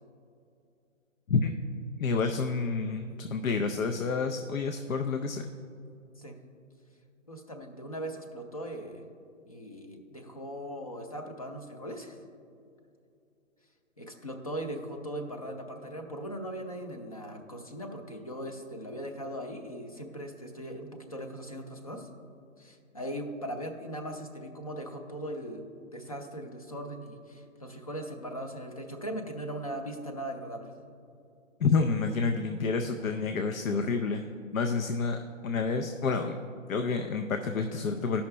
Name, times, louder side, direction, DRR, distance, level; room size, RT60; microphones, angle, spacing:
voice 1, 2.0-5.5 31.6-34.3 34.5-36.4 36.7-38.2, left 4 dB, 85° left, 6 dB, 0.7 m, -29 dB
voice 2, 7.3-9.0 9.5-12.2 14.0-22.1 22.6-30.7, equal, 30° left, 4 dB, 0.5 m, -39 dB
13.0 x 5.7 x 3.2 m, 2.6 s
hypercardioid pair, 165°, 40 cm